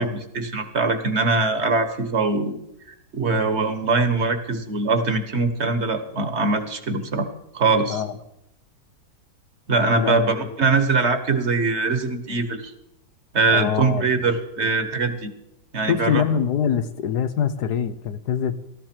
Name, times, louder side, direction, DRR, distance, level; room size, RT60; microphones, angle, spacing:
voice 1, 0.0-2.5 3.1-7.3 7.5-8.0 9.7-12.7 13.3-15.3 15.7-16.2, right 3 dB, 45° right, 9 dB, 1.5 m, -22 dB
voice 2, 9.9-10.6 13.5-14.2 14.6-14.7 15.9-18.6, left 8 dB, 90° left, 11 dB, 1.6 m, -24 dB
18.5 x 14.0 x 4.5 m, 0.82 s
omnidirectional pair, 1.7 m